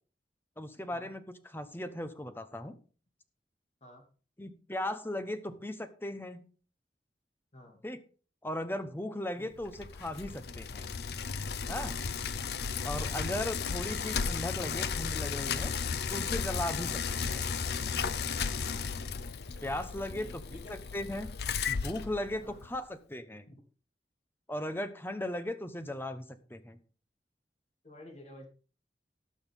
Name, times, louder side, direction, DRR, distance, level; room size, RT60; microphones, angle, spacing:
voice 1, 0.6-1.2 1.5-2.8 4.4-5.8 6.0-6.4 7.8-8.0 8.4-10.9 11.7-11.9 12.8-15.7 16.1-17.0 17.3-17.5 19.6-20.4 20.7-21.3 21.7-23.4 24.5-26.8, left 1 dB, 15° left, 10 dB, 0.9 m, -37 dB
voice 2, 7.5-7.8 9.3-9.5 12.9-13.1 16.7-16.9 20.1-20.8 22.4-22.6 23.5-23.6 27.8-28.5, left 1 dB, 40° left, 2 dB, 2.7 m, -51 dB
Bicycle, 9.6-22.8, left 6 dB, 65° left, 0.6 m, -34 dB
18.5 x 6.3 x 3.6 m, 0.39 s
head